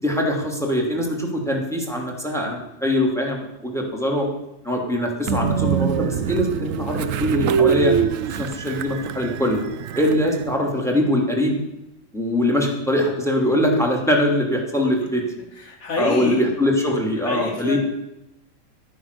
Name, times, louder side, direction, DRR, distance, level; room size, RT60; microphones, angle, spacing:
voice 1, 0.0-4.3 4.6-7.9 8.3-9.6 9.9-11.6 12.1-15.2 16.0-17.8, left 1 dB, ahead, 1 dB, 2.6 m, -22 dB
Train, 5.3-10.6, right 8 dB, 70° right, 0.8 m, -24 dB
voice 2, 15.5-16.4 17.2-17.8, left 3 dB, 50° left, 1 dB, 2.8 m, -27 dB
11.5 x 9.8 x 6.7 m, 0.88 s
omnidirectional pair, 2.0 m